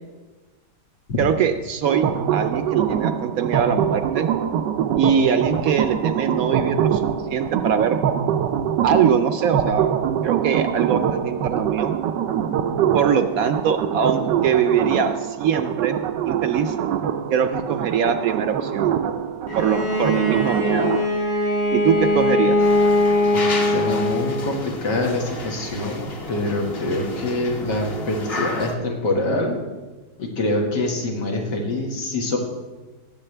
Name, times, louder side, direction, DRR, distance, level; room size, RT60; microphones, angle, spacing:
voice 1, 1.2-4.3 5.0-7.0 7.3-8.0 8.8-12.0 12.9-15.9 16.2-16.7 17.3-18.9 19.6-20.9 21.7-22.6, right 7 dB, 70° right, 8 dB, 0.9 m, -22 dB
sound 1, 1.8-21.1, right 9 dB, 90° right, 1.3 m, -24 dB
Bowed string instrument, 19.5-24.6, left 1 dB, 60° left, 2.4 m, -21 dB
sound 2, 22.6-28.7, left 2 dB, 40° left, 1.2 m, -32 dB
voice 2, 23.6-29.6 30.2-32.4, left 2 dB, 85° left, 0 dB, 2.4 m, -25 dB
19.0 x 7.6 x 3.3 m, 1.2 s
omnidirectional pair, 1.8 m